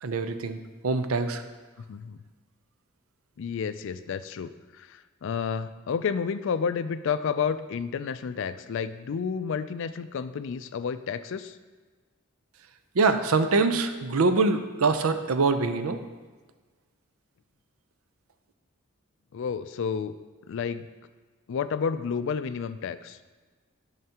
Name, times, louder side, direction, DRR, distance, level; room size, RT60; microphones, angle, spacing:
voice 1, 0.0-0.6 0.8-1.4 12.9-16.0, right 3 dB, 85° right, 9 dB, 0.6 m, -24 dB
voice 2, 1.9-2.2 3.4-4.5 4.8-11.6 19.3-20.1 20.5-20.9 21.5-23.2, left 6 dB, 60° left, 13 dB, 0.4 m, -30 dB
11.0 x 5.7 x 2.9 m, 1.4 s
head